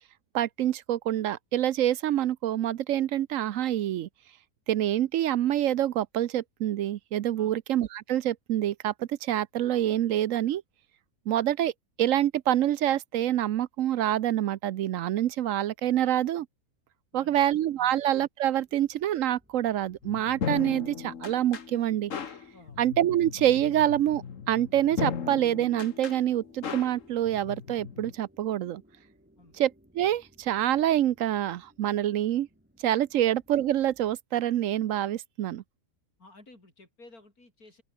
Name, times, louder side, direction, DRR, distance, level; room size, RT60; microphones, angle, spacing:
voice 1, 0.3-4.1 4.7-10.6 11.3-11.7 12.0-16.5 17.1-22.1 22.8-28.8 29.6-32.5 32.8-35.6, right 12 dB, 70° right, 1.0 m, -26 dB
voice 2, 17.1-17.5 17.7-18.1 22.5-22.8 29.4-29.6 33.1-33.2 36.2-37.8, left 2 dB, 85° left, 6.4 m, -54 dB
sound 1, 18.6-34.2, equal, 5° right, 6.2 m, -62 dB
sound 2, 20.0-28.1, left 7 dB, 60° left, 1.7 m, -37 dB
open air
omnidirectional pair, 1.5 m